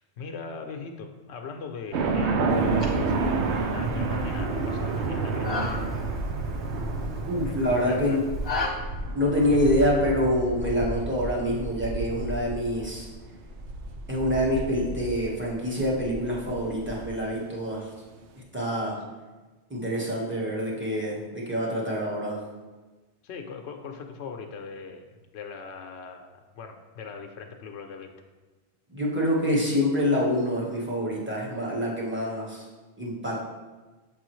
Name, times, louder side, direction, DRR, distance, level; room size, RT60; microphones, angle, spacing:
voice 1, 0.0-5.9 7.4-7.6 7.8-8.2 9.5-9.7 23.2-28.1, left 5 dB, 80° left, 4 dB, 0.9 m, -40 dB
sound 1, 1.9-17.1, right 3 dB, 90° right, 0.9 m, -30 dB
sound 2, 2.5-8.7, left 3 dB, 25° left, 0.9 m, -37 dB
voice 2, 7.3-8.2 9.1-13.1 14.1-17.9 18.3-19.0 19.7-22.4 28.9-32.7 33.0-33.4, equal, 10° right, -4 dB, 1.2 m, -26 dB
7.3 x 4.7 x 3.1 m, 1.3 s
omnidirectional pair, 1.1 m